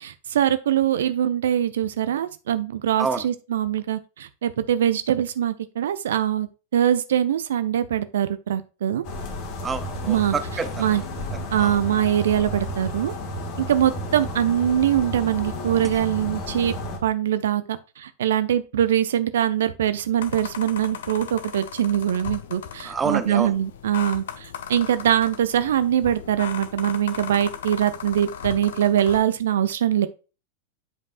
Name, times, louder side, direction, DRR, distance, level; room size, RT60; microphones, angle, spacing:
voice 1, 0.0-6.5 6.7-9.0 10.1-10.3 10.8-11.0 11.5-13.1 13.6-16.7 17.0-30.1, right 10 dB, 60° right, 0.5 m, -23 dB
sound 1, 9.0-17.0, left 1 dB, 40° left, 1.6 m, -32 dB
voice 2, 9.6-10.9 11.3-11.8 22.8-23.6, right 5 dB, 15° right, 0.7 m, -28 dB
sound 2, 20.2-29.2, left 8 dB, 60° left, 0.8 m, -37 dB
8.9 x 5.3 x 2.4 m
figure-of-eight pair, 90°, 0 cm